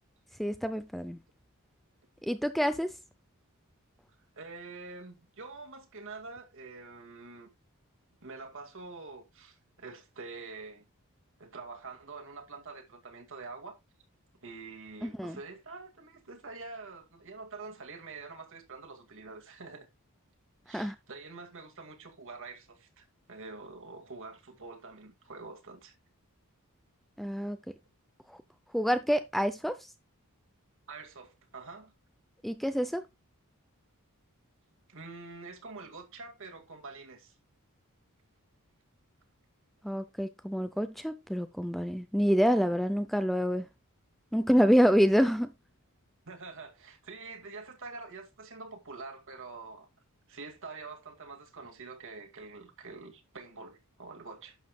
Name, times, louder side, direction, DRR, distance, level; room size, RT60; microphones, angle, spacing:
voice 1, 0.4-1.2 2.2-2.9 15.0-15.4 20.7-20.9 27.2-27.6 28.3-28.4 28.7-29.8 32.4-33.0 39.8-43.7 44.3-45.5, equal, ahead, 0.6 m, -27 dB
voice 2, 4.4-7.5 8.2-10.9 11.4-13.8 14.4-19.9 20.7-25.9 30.9-31.9 34.9-37.4 46.3-49.9 50.3-54.6, right 3 dB, 60° right, 2.1 m, -46 dB
11.5 x 7.4 x 2.3 m
head